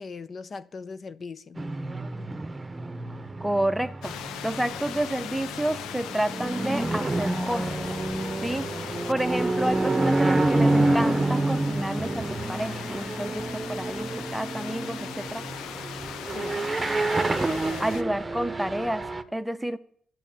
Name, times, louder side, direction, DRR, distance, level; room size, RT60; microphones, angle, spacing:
voice 1, 0.0-1.6 16.3-16.7 17.6-17.9, left 4 dB, 45° left, 0.7 m, -39 dB
sound 1, 1.6-19.2, right 2 dB, 20° right, 1.0 m, -28 dB
voice 2, 3.4-4.2 4.4-7.7 8.4-15.5 17.8-19.8, right 1 dB, 5° right, 0.8 m, -30 dB
sound 2, 4.0-18.0, left 10 dB, 90° left, 0.7 m, -39 dB
12.0 x 7.9 x 8.9 m
cardioid pair, 90°, 0 cm